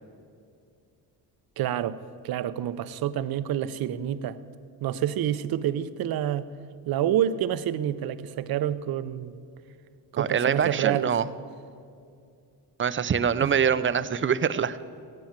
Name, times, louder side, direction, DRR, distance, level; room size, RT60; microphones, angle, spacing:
voice 1, 1.6-4.4 4.8-6.5 6.8-9.3 10.1-11.1 13.4-13.5, right 11 dB, 65° right, 0.7 m, -28 dB
voice 2, 10.2-11.3 12.8-14.8, right 7 dB, 30° right, 0.6 m, -24 dB
16.0 x 11.0 x 7.3 m
cardioid pair, 90°, 39 cm